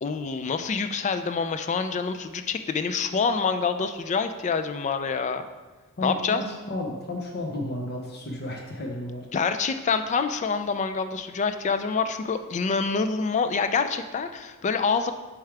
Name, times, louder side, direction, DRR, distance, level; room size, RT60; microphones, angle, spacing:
voice 1, 0.0-5.5 6.0-6.4 9.3-15.1, left 5 dB, 35° left, 9 dB, 0.3 m, -26 dB
voice 2, 6.0-9.3, left 1 dB, 50° left, 0 dB, 0.7 m, -32 dB
7.0 x 4.7 x 3.3 m, 1.2 s
head